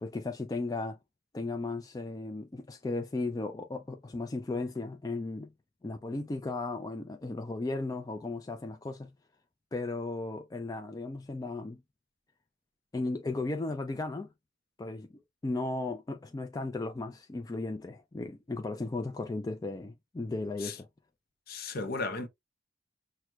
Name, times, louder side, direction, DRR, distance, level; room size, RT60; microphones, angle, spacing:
voice 1, 0.0-1.0 1.3-5.5 5.8-9.1 9.7-11.8 12.9-14.3 14.8-20.9, left 2 dB, 20° left, 0.3 m, -35 dB
voice 2, 21.5-22.3, left 3 dB, 55° left, 0.7 m, -35 dB
6.0 x 2.1 x 2.3 m
head